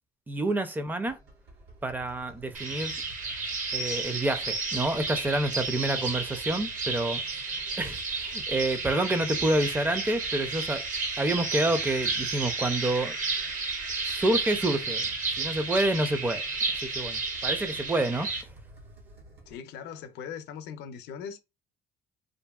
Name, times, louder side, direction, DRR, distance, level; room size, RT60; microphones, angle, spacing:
voice 1, 0.3-1.2 1.8-3.0 3.7-7.2 7.8-10.8 11.2-13.2 14.1-15.1 15.4-16.4 16.7-18.3, right 1 dB, 10° right, 0.4 m, -28 dB
sound 1, 1.1-19.6, right 2 dB, 80° right, 1.4 m, -51 dB
sound 2, 2.5-18.4, right 3 dB, 50° right, 0.9 m, -32 dB
voice 2, 19.5-21.4, left 7 dB, 85° left, 0.5 m, -40 dB
2.8 x 2.6 x 2.3 m
cardioid pair, 110°, 17 cm